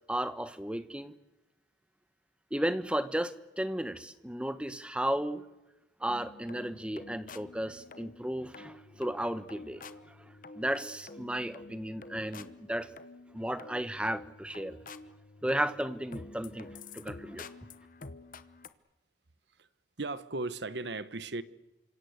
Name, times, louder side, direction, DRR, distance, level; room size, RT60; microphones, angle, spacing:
voice 1, 0.1-1.1 2.5-5.4 6.0-10.1 10.5-12.9 13.3-14.8 15.4-17.4, right 1 dB, 5° right, 1.1 m, -34 dB
sound 1, 6.1-18.7, left 3 dB, 45° left, 1.1 m, -49 dB
voice 2, 20.0-21.4, right 3 dB, 65° right, 1.1 m, -36 dB
28.5 x 26.0 x 8.0 m
head